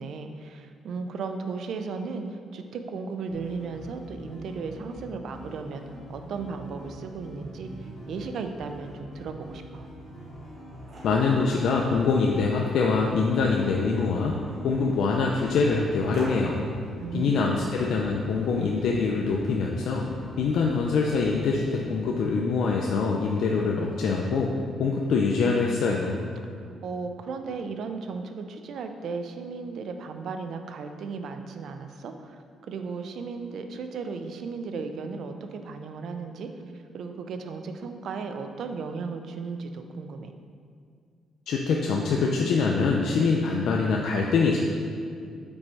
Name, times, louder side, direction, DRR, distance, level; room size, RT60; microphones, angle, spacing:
voice 1, 0.0-9.9 17.0-17.7 26.6-40.3, right 4 dB, 70° right, 6 dB, 0.5 m, -35 dB
sound 1, 3.3-21.9, equal, 45° left, 1.5 m, -44 dB
sound 2, 10.0-16.8, right 1 dB, 45° right, 1.5 m, -46 dB
voice 2, 11.0-16.7 17.1-20.1 20.4-24.5 24.8-26.2 41.5-44.6, left 4 dB, 75° left, -1 dB, 0.5 m, -24 dB
5.3 x 4.2 x 4.7 m, 2.2 s
cardioid pair, 90°, 0 cm